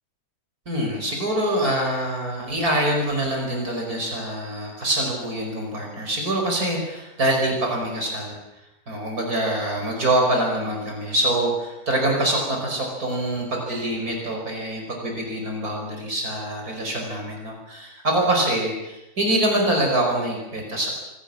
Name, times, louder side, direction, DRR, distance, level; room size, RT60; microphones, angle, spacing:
voice 1, 0.7-8.4 8.9-20.9, right 1 dB, 75° right, 1 dB, 5.7 m, -25 dB
27.0 x 18.5 x 8.7 m, 0.97 s
omnidirectional pair, 1.6 m